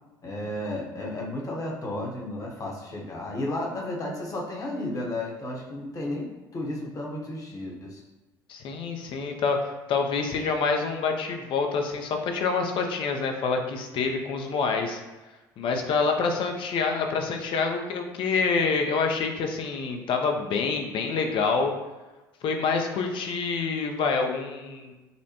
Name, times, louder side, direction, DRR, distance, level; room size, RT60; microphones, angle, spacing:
voice 1, 0.2-8.0, left 1 dB, 35° left, -1 dB, 1.0 m, -33 dB
voice 2, 8.5-15.0 15.6-21.7 22.4-24.9, left 4 dB, 60° left, 4 dB, 0.6 m, -27 dB
5.3 x 2.1 x 2.9 m, 1.1 s
hypercardioid pair, 70°, 10 cm